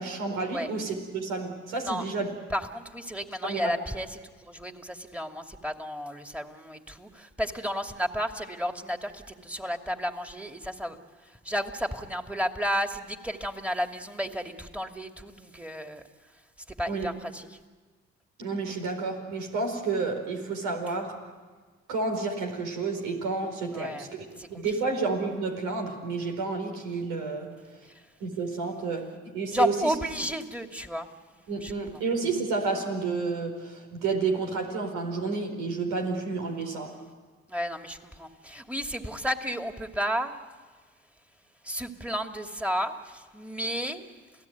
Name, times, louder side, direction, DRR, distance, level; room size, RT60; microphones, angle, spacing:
voice 1, 0.0-2.3 3.4-3.7 16.9-17.1 18.4-21.1 21.9-24.2 24.5-27.5 28.2-29.0 29.3-29.9 31.5-36.9, right 4 dB, 90° right, 3 dB, 4.6 m, -30 dB
voice 2, 2.5-11.0 11.4-16.0 16.8-17.6 23.7-24.1 24.4-24.9 27.9-28.0 29.5-31.1 31.6-32.0 37.5-40.4 41.6-44.0, equal, 5° right, 5 dB, 2.7 m, -32 dB
28.5 x 17.0 x 9.5 m, 1.4 s
supercardioid pair, 60°, 31 cm